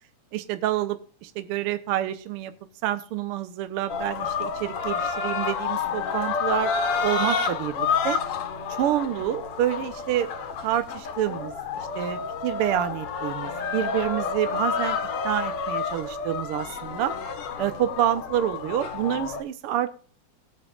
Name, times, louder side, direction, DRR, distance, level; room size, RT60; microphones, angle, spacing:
voice 1, 0.3-2.5 2.8-6.7 7.0-8.2 8.8-10.3 10.6-15.0 15.2-17.1 17.6-19.9, right 12 dB, 80° right, 10 dB, 1.3 m, -28 dB
sound 1, 3.9-19.4, left 5 dB, 60° left, 1.8 m, -29 dB
19.0 x 8.5 x 2.4 m, 0.43 s
omnidirectional pair, 3.4 m